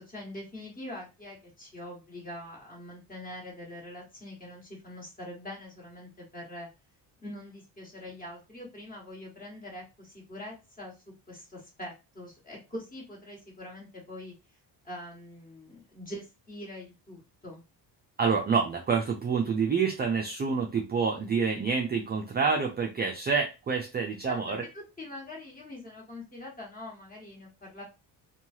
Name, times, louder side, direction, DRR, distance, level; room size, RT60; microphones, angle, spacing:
voice 1, 0.0-6.7 7.2-10.9 11.3-14.6 14.8-17.6 24.2-27.8, left 1 dB, 20° left, -2 dB, 1.5 m, -43 dB
voice 2, 18.2-24.6, right 5 dB, 25° right, 2 dB, 0.4 m, -27 dB
3.0 x 2.3 x 2.7 m, 0.27 s
cardioid pair, 125°, 42 cm